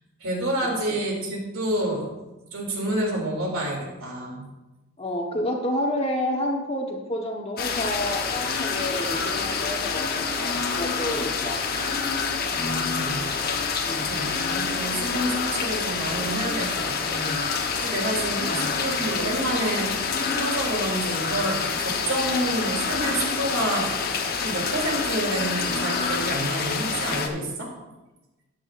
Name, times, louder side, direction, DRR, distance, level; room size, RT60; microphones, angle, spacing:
voice 1, 0.2-2.0 2.5-4.5 12.5-13.6 14.1-19.9 20.3-27.7, right 1 dB, 75° right, -1 dB, 3.0 m, -29 dB
voice 2, 5.0-11.6 13.8-14.4 18.4-18.8, left 1 dB, 25° left, 1 dB, 1.3 m, -30 dB
sound 1, 7.6-27.3, left 5 dB, 45° left, 1.1 m, -27 dB
14.0 x 10.5 x 2.6 m, 1.1 s
head